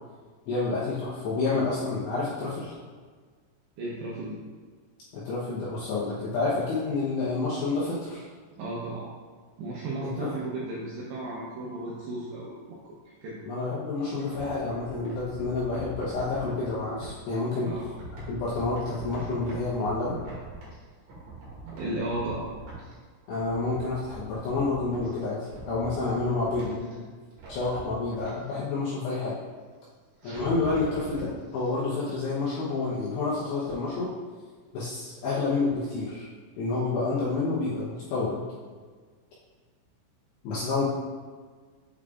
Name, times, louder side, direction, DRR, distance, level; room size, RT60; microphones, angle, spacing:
voice 1, 0.5-2.7 5.1-8.3 10.0-10.3 13.4-17.7 18.3-20.2 23.3-27.1 27.5-29.4 30.2-34.1 34.7-36.3 36.6-38.4 40.4-40.8, left 3 dB, 75° left, -8 dB, 2.5 m, -29 dB
voice 2, 3.8-4.4 8.6-9.1 9.6-12.9 13.2-13.4 17.6-17.8 21.6-22.5, right 2 dB, 85° right, -6 dB, 2.5 m, -34 dB
sound 1, 14.0-17.1 17.6-20.8 21.1-22.9 23.2-25.1 25.4-26.9 27.3-28.3 30.2-31.3 31.6-31.7, right 2 dB, 55° right, 2.3 m, -43 dB
8.5 x 4.8 x 2.4 m, 1.5 s
omnidirectional pair, 6.0 m